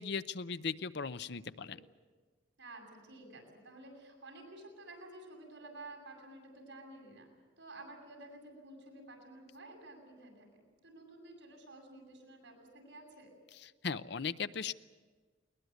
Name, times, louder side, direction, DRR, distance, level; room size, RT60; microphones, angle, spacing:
voice 1, 0.0-1.8 13.8-14.7, left 5 dB, 60° left, 14 dB, 0.7 m, -37 dB
voice 2, 2.6-7.3 7.6-13.3, right 2 dB, 75° right, 1 dB, 7.6 m, -52 dB
21.0 x 20.5 x 9.4 m, 1.4 s
head